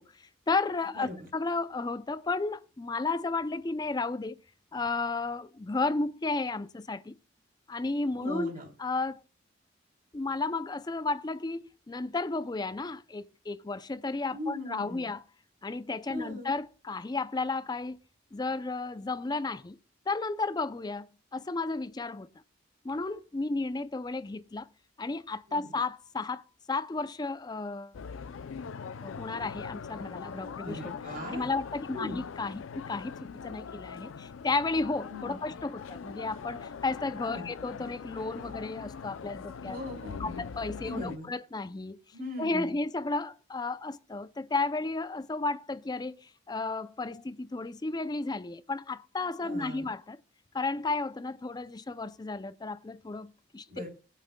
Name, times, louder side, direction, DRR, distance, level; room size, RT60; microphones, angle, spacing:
voice 1, 0.0-4.4 4.7-7.1 7.7-8.5 8.8-9.2 10.1-15.2 15.6-18.0 18.3-19.8 20.1-22.3 22.8-24.7 25.0-26.4 26.7-28.0 29.0-31.0 31.3-32.6 32.9-39.8 40.2-42.0 42.4-50.2 50.5-53.7, left 3 dB, 20° left, 0.4 m, -33 dB
voice 2, 0.9-1.3 8.2-8.7 14.3-15.1 16.1-16.5 25.5-25.7 30.6-31.5 31.9-32.2 35.1-35.3 37.2-37.5 39.7-41.3 42.1-42.7 49.4-49.9 53.7-53.9, left 1 dB, 45° right, 3.2 m, -40 dB
sound 1, 27.9-41.2, left 6 dB, 80° left, 0.4 m, -42 dB
21.5 x 7.5 x 2.2 m
head